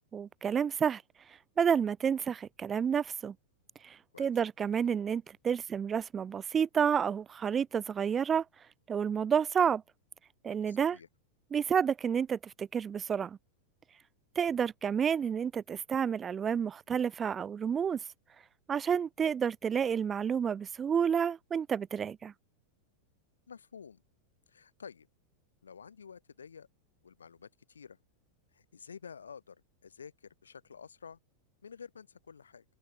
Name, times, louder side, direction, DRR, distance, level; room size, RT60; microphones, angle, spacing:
voice 1, 0.1-1.0 1.6-3.3 3.8-8.4 8.9-9.8 10.4-11.0 11.5-13.4 14.4-18.0 18.7-22.3, right 7 dB, 20° right, 0.8 m, -30 dB
voice 2, 10.7-11.1 23.5-24.0 24.5-25.1 25.6-26.7 27.0-28.0 28.5-31.2 31.6-32.6, left 6 dB, 70° left, 7.0 m, -50 dB
open air
figure-of-eight pair, 90°, 0 cm